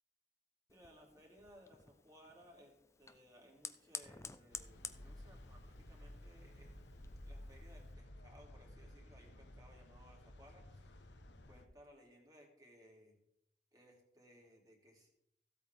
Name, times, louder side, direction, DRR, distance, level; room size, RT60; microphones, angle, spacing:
Fire, 0.7-7.9, left 5 dB, 15° left, 0.6 m, -53 dB
voice 1, 0.7-6.8 7.2-11.1 11.5-13.2 13.7-15.1, equal, 20° right, -1 dB, 3.2 m, -63 dB
sound 1, 4.5-11.6, left 1 dB, 75° left, 1.1 m, -54 dB
15.5 x 8.4 x 3.6 m, 0.78 s
head